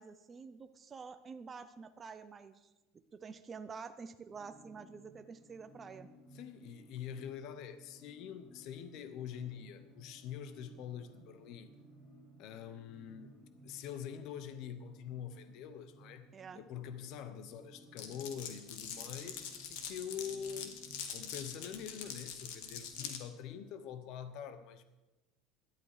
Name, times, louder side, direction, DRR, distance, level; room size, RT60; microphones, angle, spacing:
voice 1, 0.0-2.7 2.9-6.1 16.3-16.6, right 5 dB, 20° right, 9 dB, 0.6 m, -48 dB
sound 1, 4.3-23.7, right 1 dB, 20° left, 4.2 m, -59 dB
voice 2, 6.3-11.7 12.4-13.4 13.6-20.8 21.1-24.8, left 8 dB, 55° left, 11 dB, 0.9 m, -45 dB
Glass, 18.0-23.2, left 8 dB, 75° left, 1.9 m, -44 dB
17.5 x 11.5 x 4.9 m, 1.1 s
cardioid pair, 150°, 0 cm